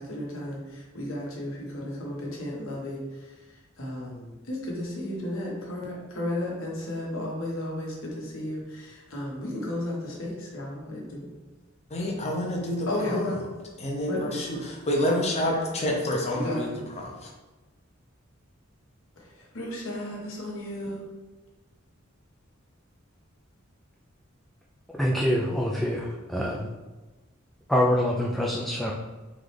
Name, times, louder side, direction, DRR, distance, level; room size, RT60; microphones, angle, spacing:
voice 1, 0.0-3.4 3.8-11.3 12.9-13.4 14.1-14.3 16.3-16.8 19.2-21.0, left 1 dB, 75° left, -3 dB, 1.2 m, -34 dB
voice 2, 11.9-13.2 13.8-16.7 17.0-17.1, left 1 dB, 35° left, 0 dB, 0.7 m, -28 dB
voice 3, 25.0-26.7 27.7-28.9, equal, ahead, -4 dB, 0.4 m, -25 dB
3.8 x 3.1 x 3.3 m, 1.2 s
head